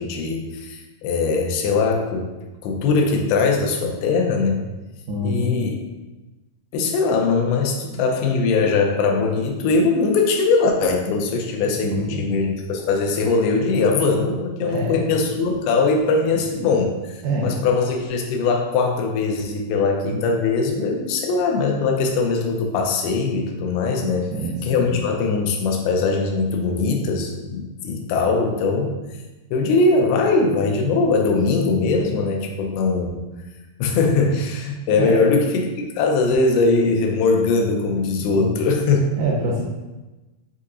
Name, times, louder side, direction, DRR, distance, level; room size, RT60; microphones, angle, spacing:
voice 1, 0.0-2.3 2.6-4.6 5.2-5.8 6.7-24.3 24.6-29.0 29.5-33.2 33.8-39.0, left 4 dB, 85° left, 2 dB, 2.5 m, -21 dB
voice 2, 5.1-5.5 11.8-12.2 14.6-15.2 17.2-17.7 20.1-20.4 24.3-24.9 35.0-35.2 38.4-38.5 39.2-39.6, right 1 dB, 80° right, -3 dB, 2.0 m, -26 dB
6.5 x 2.8 x 2.5 m, 1.1 s
omnidirectional pair, 4.4 m